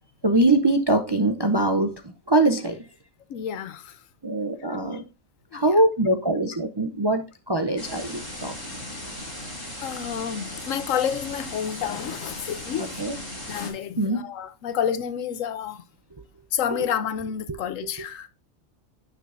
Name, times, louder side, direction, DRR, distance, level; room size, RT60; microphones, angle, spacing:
voice 1, 0.2-2.8 4.2-5.0 5.5-8.5 12.8-13.2 14.0-14.2 17.5-17.6, right 2 dB, 35° right, 0.4 m, -23 dB
voice 2, 3.3-4.0 5.5-5.7 9.8-13.0 13.5-15.8 16.5-18.3, left 8 dB, 90° left, 1.1 m, -29 dB
sound 1, 7.8-13.7, left 1 dB, 15° left, 2.4 m, -37 dB
9.5 x 6.0 x 2.6 m
omnidirectional pair, 1.3 m